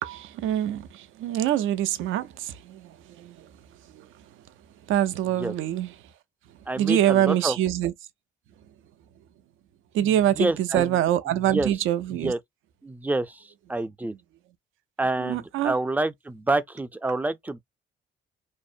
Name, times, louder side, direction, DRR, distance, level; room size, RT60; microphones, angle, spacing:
voice 1, 0.0-3.5 3.9-4.0 4.9-5.9 6.8-7.9 9.9-12.3 15.2-15.7, right 12 dB, 80° right, 0.4 m, -25 dB
voice 2, 6.7-7.6 10.0-11.0 11.3-11.7 12.1-12.4 12.8-14.2 15.0-17.6, right 2 dB, 10° right, 0.3 m, -28 dB
2.6 x 2.0 x 2.5 m
cardioid pair, 90°, 20 cm